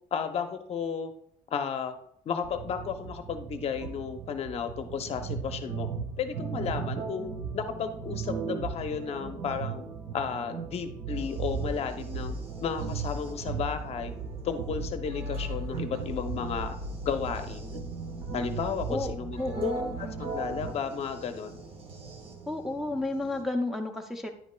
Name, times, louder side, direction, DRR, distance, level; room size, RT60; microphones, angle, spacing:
voice 1, 0.1-1.1 1.5-1.9 2.3-5.9 6.2-9.8 10.1-14.1 14.4-16.7 17.0-17.8 18.3-19.7 20.2-21.6, left 6 dB, 45° left, 8 dB, 0.7 m, -33 dB
sound 1, 2.4-20.7, right 4 dB, 85° right, 1.4 m, -36 dB
sound 2, 11.1-23.4, right 4 dB, 40° right, 1.1 m, -48 dB
voice 2, 18.9-20.0 22.5-24.3, left 2 dB, ahead, 1 dB, 0.5 m, -32 dB
9.9 x 8.4 x 2.2 m, 0.68 s
cardioid pair, 160°, 15 cm